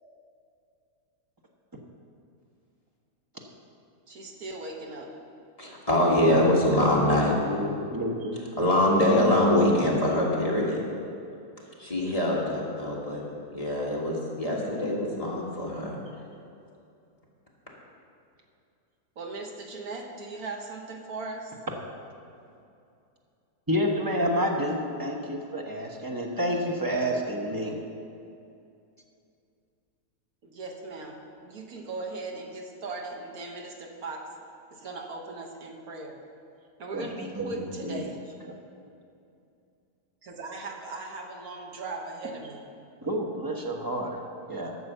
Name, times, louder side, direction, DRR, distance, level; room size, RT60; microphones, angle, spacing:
voice 1, 4.1-5.1 19.2-21.5 30.4-34.3 34.7-36.2 36.8-38.2 40.2-42.7, right 3 dB, 65° right, 1 dB, 1.8 m, -38 dB
voice 2, 5.6-7.3 8.6-10.8 11.8-13.2 13.5-16.0, left 1 dB, 20° left, -5 dB, 1.8 m, -24 dB
voice 3, 7.4-8.4 23.7-27.8 36.9-37.1 37.4-38.0 43.0-44.2 44.5-44.7, equal, 15° right, 0 dB, 1.0 m, -29 dB
11.5 x 6.9 x 6.8 m, 2.6 s
omnidirectional pair, 1.7 m